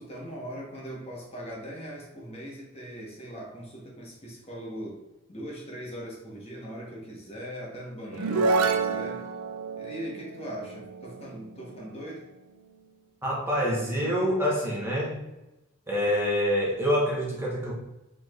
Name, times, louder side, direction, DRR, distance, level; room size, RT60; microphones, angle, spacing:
voice 1, 0.0-5.0 5.3-9.2 9.8-12.3, equal, 30° left, -3 dB, 1.1 m, -40 dB
sound 1, 8.1-11.7, right 4 dB, 90° right, 0.5 m, -28 dB
voice 2, 13.2-15.2 15.9-17.7, equal, 10° right, -5 dB, 1.1 m, -26 dB
4.7 x 4.6 x 2.4 m, 0.98 s
head